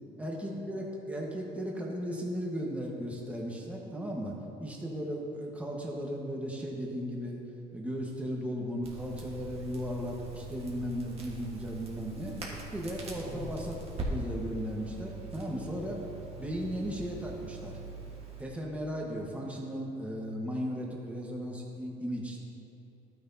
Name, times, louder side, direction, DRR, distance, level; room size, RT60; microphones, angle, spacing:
voice 1, 0.2-4.3 4.6-7.4 7.7-12.3 12.7-13.8 14.1-16.0 16.4-17.8 18.4-22.5, equal, 10° right, -2 dB, 1.4 m, -36 dB
Crackle, 8.8-18.4, right 2 dB, 35° right, 1.7 m, -42 dB
11.5 x 9.4 x 2.8 m, 2.8 s
cardioid pair, 110°, 17 cm